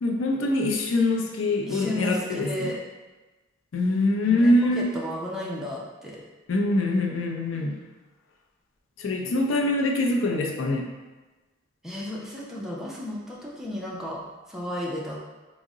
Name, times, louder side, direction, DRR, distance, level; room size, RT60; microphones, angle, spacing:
voice 1, 0.0-2.7 3.7-4.9 6.5-7.8 9.0-10.9, left 2 dB, 90° left, 2 dB, 0.5 m, -24 dB
voice 2, 1.7-2.7 4.2-6.2 11.8-14.2 14.5-15.2, left 1 dB, ahead, -5 dB, 0.5 m, -33 dB
3.6 x 2.0 x 3.6 m, 1.2 s
head